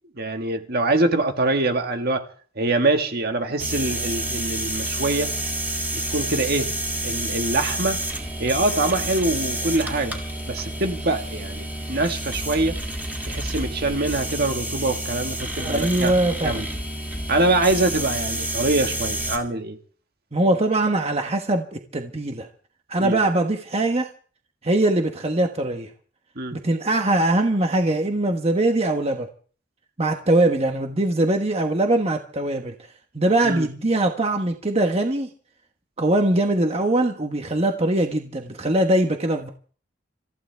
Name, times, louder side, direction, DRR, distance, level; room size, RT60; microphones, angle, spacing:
voice 1, 0.1-2.2 2.5-5.3 6.1-6.7 7.0-8.0 8.4-10.2 10.5-12.8 13.2-16.1 16.4-16.6 17.3-19.8 23.0-23.2 26.3-26.6 33.4-33.7, right 2 dB, 55° right, 1.7 m, -24 dB
sound 1, 3.6-19.4, right 1 dB, 10° right, 3.2 m, -29 dB
voice 2, 15.6-16.7 20.3-22.5 22.9-24.1 24.6-25.9 26.5-29.3 30.0-32.7 33.1-35.3 36.0-39.5, right 2 dB, 30° right, 1.3 m, -22 dB
27.0 x 15.0 x 3.5 m
head